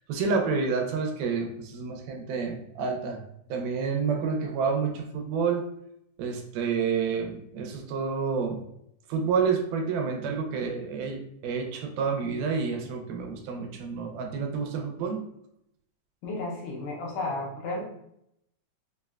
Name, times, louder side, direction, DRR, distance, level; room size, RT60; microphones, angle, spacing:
voice 1, 0.1-3.2 3.5-5.6 6.2-8.6 9.1-15.2, right 5 dB, 85° right, 3 dB, 2.1 m, -29 dB
voice 2, 16.2-17.8, left 2 dB, 75° left, -1 dB, 1.9 m, -33 dB
5.2 x 2.1 x 2.3 m, 0.77 s
omnidirectional pair, 3.7 m